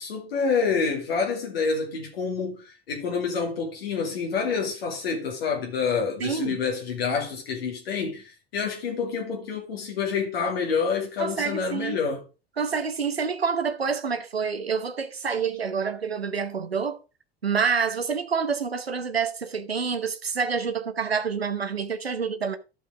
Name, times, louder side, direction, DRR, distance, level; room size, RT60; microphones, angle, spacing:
voice 1, 0.0-12.2, left 5 dB, 75° left, 2.4 m, -28 dB
voice 2, 6.2-6.6 11.2-12.0 12.6-17.0 17.4-22.6, right 6 dB, 90° right, 1.0 m, -27 dB
13.5 x 5.5 x 4.7 m
figure-of-eight pair, 70°, 30 cm